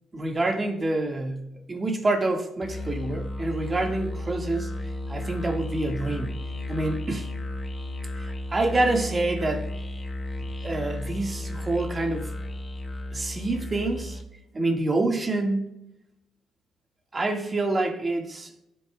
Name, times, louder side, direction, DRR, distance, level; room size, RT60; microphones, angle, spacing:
voice 1, 0.1-4.7 5.1-6.4 6.7-7.3 8.1-9.7 10.6-12.3 13.1-14.2 14.5-15.7 17.1-18.5, right 2 dB, 30° right, 1.7 m, -27 dB
Musical instrument, 2.6-14.3, left 1 dB, 30° left, 1.3 m, -34 dB
16.0 x 8.1 x 2.3 m
cardioid pair, 90°, 0 cm